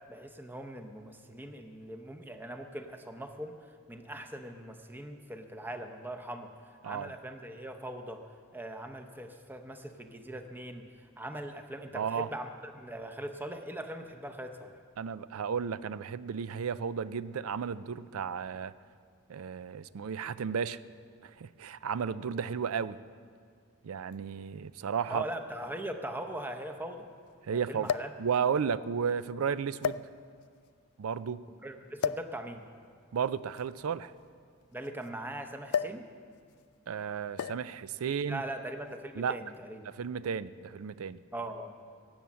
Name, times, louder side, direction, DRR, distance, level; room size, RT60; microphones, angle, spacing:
voice 1, 0.1-8.2 8.5-14.8 25.0-27.1 27.5-28.1 31.6-32.6 34.7-36.1 38.0-39.9 41.3-41.8, right 1 dB, 10° right, 5 dB, 0.7 m, -41 dB
voice 2, 11.9-12.3 15.0-18.7 19.3-20.8 21.2-23.0 23.8-25.2 27.4-27.9 28.2-30.0 31.0-31.4 33.1-34.1 36.9-38.4 39.2-39.4 39.9-41.2, right 7 dB, 80° right, 16 dB, 0.4 m, -33 dB
sound 1, 24.1-24.2 25.3-25.4 25.7-25.8 27.8-28.2 29.1-29.3 29.8-30.5 32.0-32.3 33.5-35.1 35.7-36.1 36.3-36.6 37.4-37.8 38.7-39.0, left 7 dB, 80° left, 0.3 m, -34 dB
17.5 x 7.1 x 7.5 m, 2.1 s
head